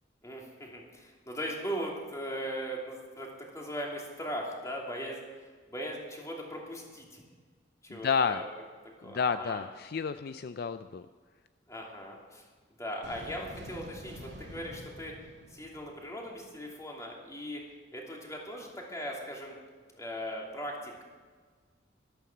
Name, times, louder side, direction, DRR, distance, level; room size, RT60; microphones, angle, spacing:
voice 1, 0.2-5.3 5.7-7.2 7.8-8.5 9.0-9.6 11.7-12.4 12.8-15.1 15.5-17.6 17.9-19.5 19.9-21.0, equal, 20° left, -2 dB, 2.9 m, -39 dB
voice 2, 7.9-8.4 9.0-11.0, left 6 dB, 55° left, 11 dB, 0.4 m, -30 dB
sound 1, 13.0-16.5, equal, 70° right, 2.3 m, -47 dB
13.0 x 12.5 x 6.1 m, 1.5 s
head